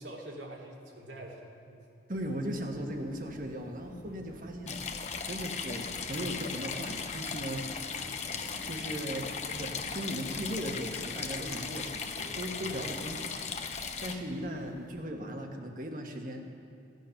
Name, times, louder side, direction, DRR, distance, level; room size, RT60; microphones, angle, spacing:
voice 1, 0.0-1.8 4.1-4.3 12.7-12.8 14.3-14.4, right 1 dB, 90° right, -2 dB, 2.3 m, -46 dB
voice 2, 2.1-4.8 5.2-7.7 8.6-13.3 14.0-16.4, equal, 50° right, 3 dB, 1.3 m, -37 dB
sound 1, 2.1-15.0, equal, 65° right, 2.4 m, -50 dB
sound 2, 4.7-14.1, left 5 dB, 40° left, 0.8 m, -37 dB
16.0 x 9.4 x 5.8 m, 2.5 s
head